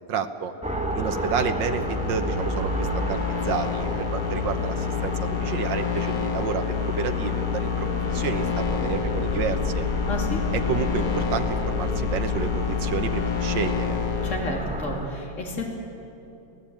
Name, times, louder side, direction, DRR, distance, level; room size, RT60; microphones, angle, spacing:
voice 1, 0.1-0.5 0.9-9.8 10.5-14.0, right 7 dB, 80° right, 7 dB, 1.7 m, -30 dB
sound 1, 0.6-15.1, right 1 dB, 5° right, 1.5 m, -31 dB
sound 2, 0.9-14.3, left 9 dB, 75° left, 1.9 m, -28 dB
voice 2, 10.1-10.4 14.2-15.6, left 2 dB, 40° left, -1 dB, 3.4 m, -30 dB
27.5 x 17.0 x 8.8 m, 2.9 s
omnidirectional pair, 2.0 m